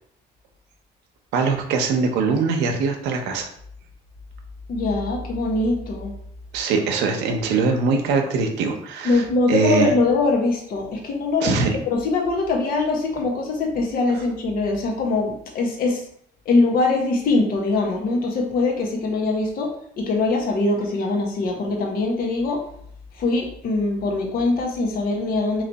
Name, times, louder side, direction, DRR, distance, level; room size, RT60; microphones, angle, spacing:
voice 1, 1.3-3.5 6.5-9.2 9.5-9.9 11.4-11.8, right 4 dB, 90° right, 4 dB, 0.7 m, -22 dB
voice 2, 4.7-6.1 9.0-11.5 11.9-16.0 16.4-22.6 23.1-25.6, left 3 dB, 60° left, 1 dB, 1.1 m, -22 dB
3.2 x 3.0 x 4.0 m, 0.66 s
cardioid pair, 110°, 17 cm